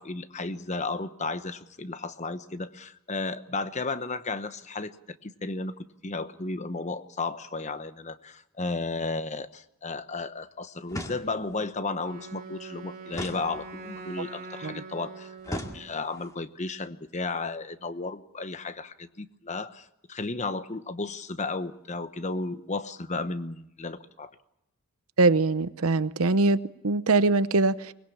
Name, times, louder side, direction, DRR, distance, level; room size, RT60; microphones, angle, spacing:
voice 1, 0.0-4.9 5.2-24.3, left 3 dB, 30° left, 11 dB, 1.0 m, -34 dB
sound 1, 10.9-11.6 13.1-14.1 15.4-16.3, equal, 15° left, 2.2 m, -38 dB
Wind instrument woodwind instrument, 12.0-16.0, right 4 dB, 40° right, 2.7 m, -43 dB
voice 2, 25.2-27.9, right 3 dB, 75° right, 14 dB, 0.9 m, -23 dB
24.0 x 21.0 x 7.3 m, 0.87 s
head